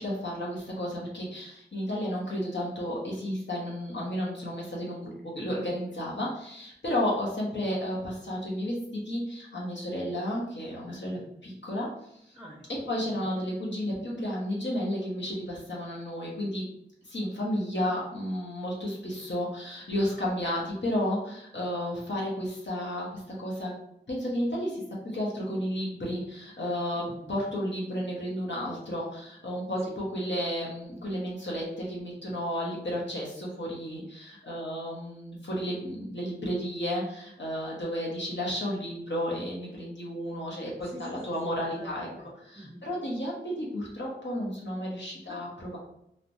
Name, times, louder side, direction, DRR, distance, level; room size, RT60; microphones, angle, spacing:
voice 1, 0.0-12.4 12.9-16.7 17.0-23.7 24.1-42.1 42.4-45.8, equal, 70° left, -5 dB, 0.8 m, -32 dB
voice 2, 12.3-12.9 13.2-13.3 27.0-27.3 29.8-29.9 40.8-42.9 45.2-45.4, equal, 5° right, -3 dB, 0.6 m, -47 dB
3.1 x 2.0 x 2.6 m, 0.77 s
wide cardioid pair, 45°, 19 cm